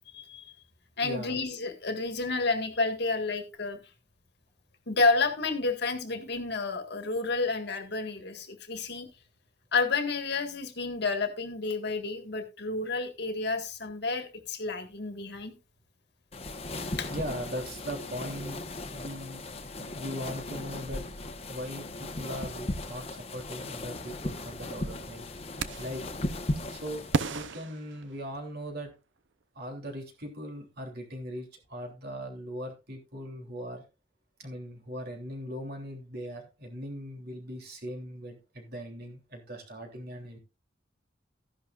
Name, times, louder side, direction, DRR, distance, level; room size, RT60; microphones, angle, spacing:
voice 1, 0.1-0.5 1.0-3.8 4.9-9.1 9.7-15.5 17.0-17.1, left 3 dB, 60° left, 7 dB, 1.7 m, -30 dB
voice 2, 1.0-1.4 17.1-18.6 18.9-19.4 19.8-21.0 21.5-25.2 25.8-26.0 26.7-27.0 27.3-28.9 29.5-33.8 34.4-40.4, equal, 55° right, 3 dB, 3.2 m, -39 dB
sound 1, 16.3-27.5, left 2 dB, 35° left, 1.2 m, -37 dB
sound 2, 25.6-26.1 27.1-28.6, right 4 dB, 70° right, 0.7 m, -33 dB
13.5 x 11.0 x 2.5 m, 0.28 s
head